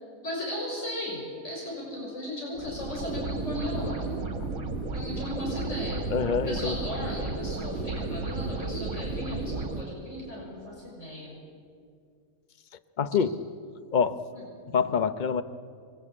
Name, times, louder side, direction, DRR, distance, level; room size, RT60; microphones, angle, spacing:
voice 1, 0.2-4.1 4.9-6.1 6.4-11.3 14.3-14.4, left 1 dB, 55° left, -4 dB, 6.9 m, -36 dB
sound 1, 2.6-9.8, right 3 dB, 60° right, 2.0 m, -33 dB
voice 2, 6.1-6.8 13.0-13.4 13.9-14.2 14.7-15.4, left 6 dB, 40° left, 11 dB, 0.9 m, -25 dB
27.5 x 22.5 x 8.7 m, 2.3 s
omnidirectional pair, 1.5 m